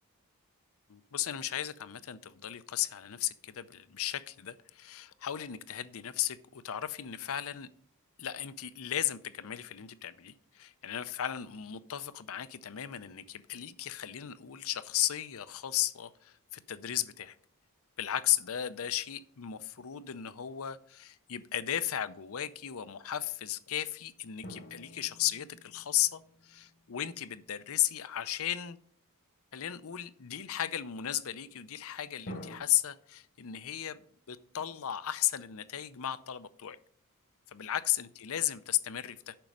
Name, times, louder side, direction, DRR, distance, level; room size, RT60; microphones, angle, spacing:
voice 1, 0.9-7.7 8.2-17.4 18.0-28.8 29.5-36.8 37.5-39.4, left 12 dB, 65° left, 15 dB, 0.6 m, -35 dB
sound 1, 24.4-27.4 32.3-32.6, equal, 50° left, 1.1 m, -48 dB
9.0 x 6.1 x 5.3 m, 0.63 s
head